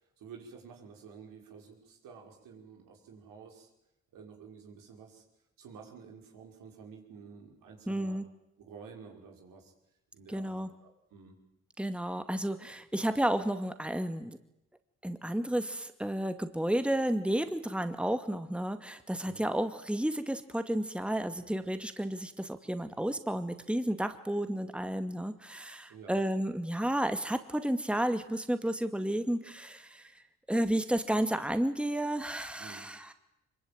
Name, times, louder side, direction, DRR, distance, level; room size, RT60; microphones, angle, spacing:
voice 1, 0.0-3.7 4.1-5.2 5.6-8.2 8.6-9.7 10.1-11.4 19.2-19.4 25.9-26.2 32.6-32.9, right 6 dB, 75° right, 1 dB, 5.9 m, -51 dB
voice 2, 7.9-8.3 10.3-10.7 11.8-14.3 15.0-30.1 30.5-33.1, right 1 dB, 5° right, 9 dB, 2.3 m, -32 dB
24.5 x 23.0 x 9.1 m, 0.86 s
hypercardioid pair, 45°, 33 cm